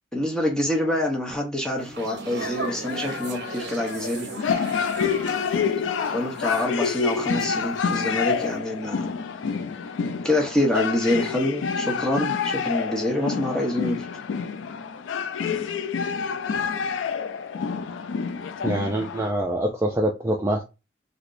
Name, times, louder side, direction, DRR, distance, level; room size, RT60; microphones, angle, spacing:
voice 1, 0.1-4.3 6.1-9.1 10.2-14.1, left 1 dB, 5° left, 0.8 m, -26 dB
sound 1, 1.8-8.0 8.3-8.6, right 3 dB, 60° right, 0.8 m, -38 dB
sound 2, 2.4-19.3, left 6 dB, 90° left, 0.4 m, -28 dB
voice 2, 18.6-20.6, right 1 dB, 15° right, 0.4 m, -25 dB
3.2 x 2.9 x 2.5 m
head